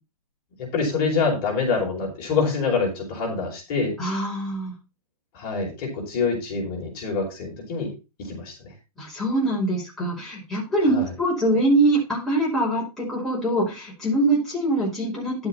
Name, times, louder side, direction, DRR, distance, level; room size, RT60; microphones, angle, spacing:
voice 1, 0.6-3.9 5.3-7.9 8.2-8.7 10.8-11.1, left 4 dB, 35° left, -1 dB, 5.2 m, -26 dB
voice 2, 4.0-4.7 9.0-15.5, right 1 dB, ahead, -6 dB, 5.6 m, -23 dB
11.5 x 7.9 x 4.3 m, 0.29 s
hypercardioid pair, 155°, 20 cm